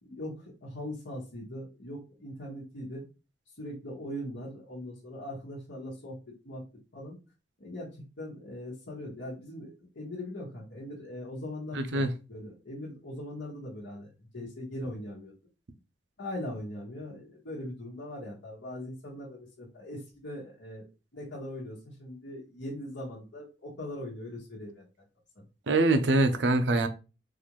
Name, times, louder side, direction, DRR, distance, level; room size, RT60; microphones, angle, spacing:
voice 1, 0.0-3.1 3.6-6.2 6.4-6.6 6.9-7.2 7.6-7.9 8.2-15.3 16.2-20.9 21.1-24.8 25.4-25.5, left 1 dB, 85° left, 1.2 m, -40 dB
voice 2, 11.7-12.1 25.7-26.9, right 2 dB, 75° right, 0.6 m, -24 dB
4.1 x 2.5 x 3.0 m
head